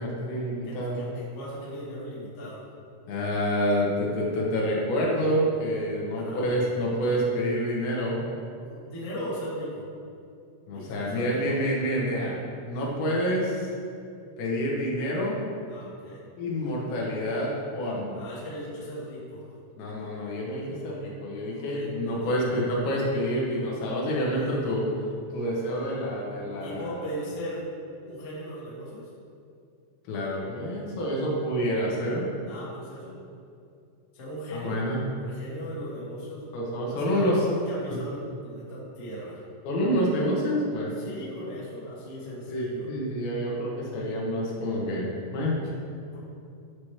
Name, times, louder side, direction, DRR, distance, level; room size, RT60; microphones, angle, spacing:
voice 1, 0.0-1.0 3.1-8.2 10.7-12.4 12.7-13.7 14.4-15.4 16.4-18.2 19.8-24.9 25.3-26.9 30.1-32.3 34.5-35.0 36.5-37.4 39.7-41.1 42.5-45.7, equal, 80° left, -4 dB, 3.7 m, -28 dB
voice 2, 0.6-2.6 6.1-6.4 8.6-9.8 10.7-11.6 15.7-16.2 18.1-19.4 21.5-22.5 24.2-24.6 26.6-27.6 28.0-29.1 32.5-33.2 34.1-34.8 35.2-36.5 36.9-39.4 41.0-42.9, equal, 45° left, -7 dB, 0.9 m, -38 dB
10.5 x 6.0 x 3.3 m, 2.4 s
omnidirectional pair, 5.0 m